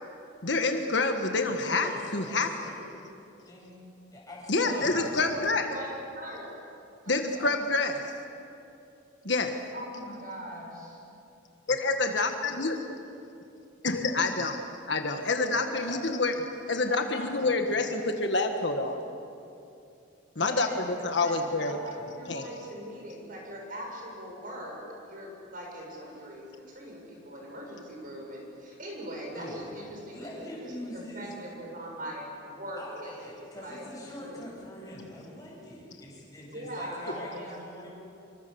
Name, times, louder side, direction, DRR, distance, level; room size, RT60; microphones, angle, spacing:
voice 1, 0.4-2.5 4.5-5.7 7.1-8.0 9.2-9.5 11.7-12.8 13.8-16.3 16.7-19.0 20.3-20.7 21.0-21.8 22.3-22.5, left 3 dB, 60° left, 5 dB, 1.6 m, -27 dB
voice 2, 1.5-2.8 3.4-3.8 4.1-5.3 29.3-31.4 32.7-37.9, left 1 dB, 20° left, -4 dB, 7.9 m, -43 dB
voice 3, 4.5-6.6 7.0-7.6 9.7-11.0 15.4-17.8 20.3-33.3 33.6-33.9 34.2-34.4 36.5-37.6, equal, 45° right, -1 dB, 7.1 m, -41 dB
27.5 x 24.5 x 7.1 m, 2.7 s
head